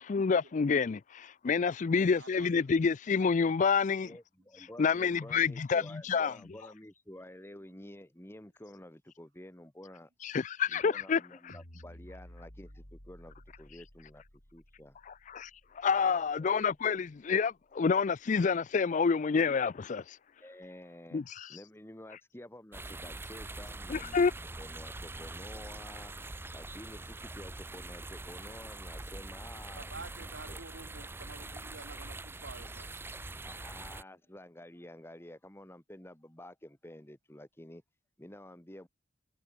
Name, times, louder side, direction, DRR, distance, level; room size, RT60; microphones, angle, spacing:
voice 1, 0.0-4.1 4.8-6.3 10.2-11.2 15.1-15.5 15.7-20.2 21.1-21.5 23.9-24.3, left 5 dB, 40° left, 0.4 m, -28 dB
voice 2, 2.2-2.5 29.7-33.5, right 3 dB, 80° right, 2.3 m, -50 dB
voice 3, 4.0-10.1 10.7-14.2 14.5-15.0 15.9-16.8 20.4-21.2 21.5-24.3 24.6-29.9 30.2-30.6 33.4-37.8 38.2-38.9, left 1 dB, 15° left, 1.6 m, -50 dB
sound 1, 11.5-17.8, equal, 80° left, 6.8 m, -55 dB
sound 2, 22.7-34.0, right 2 dB, 10° right, 0.5 m, -44 dB
head